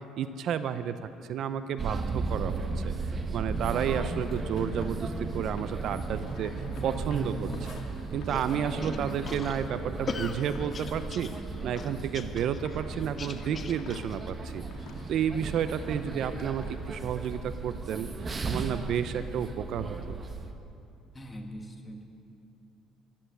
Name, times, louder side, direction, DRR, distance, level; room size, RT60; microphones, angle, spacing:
voice 1, 0.2-2.9 3.3-6.5 6.8-7.5 8.1-11.3 11.6-14.6 15.1-20.2, right 8 dB, 65° right, 11 dB, 0.6 m, -31 dB
sound 1, 1.8-20.5, right 3 dB, 30° right, 1.2 m, -35 dB
sound 2, 3.5-17.3, left 4 dB, 60° left, 2.2 m, -50 dB
sound 3, 8.3-14.3, left 4 dB, 35° left, 1.0 m, -41 dB
voice 2, 8.8-9.2 21.1-22.0, equal, 20° left, 2 dB, 2.1 m, -41 dB
14.5 x 12.5 x 7.9 m, 2.7 s
cardioid pair, 95°, 0 cm